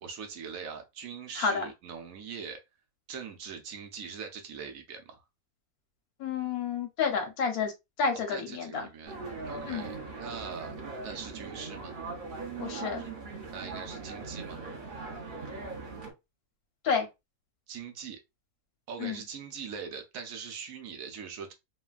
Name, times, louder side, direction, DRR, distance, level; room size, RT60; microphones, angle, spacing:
voice 1, 0.0-2.6 3.1-5.2 8.3-9.1 9.5-10.8 11.0-11.9 13.5-14.6 17.7-18.2 18.9-21.5, right 6 dB, 70° right, 1.0 m, -42 dB
voice 2, 6.2-7.7 8.0-8.9 9.7-10.0 12.6-13.1 16.8-17.1 19.0-19.2, left 5 dB, 85° left, 1.3 m, -30 dB
sound 1, 9.1-16.1, right 4 dB, 45° right, 0.7 m, -40 dB
3.2 x 2.2 x 2.3 m
omnidirectional pair, 1.5 m